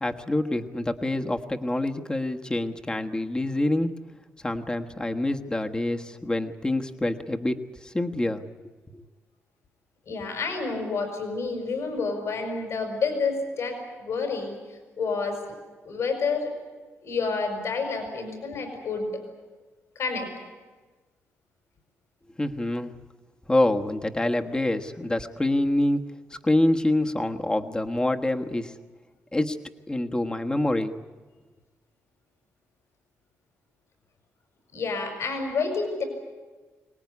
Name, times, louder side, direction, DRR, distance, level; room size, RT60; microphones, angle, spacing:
voice 1, 0.0-4.0 4.4-8.4 8.9-9.0 22.4-22.9 23.5-26.0 26.4-28.7 29.3-29.6 29.9-31.0, left 1 dB, 15° left, 5 dB, 1.3 m, -26 dB
voice 2, 10.1-15.6 15.8-16.5 17.0-19.2 20.0-20.3 34.7-36.0, left 4 dB, 70° left, 5 dB, 5.3 m, -29 dB
24.5 x 19.0 x 9.6 m, 1.3 s
cardioid pair, 100°, 5 cm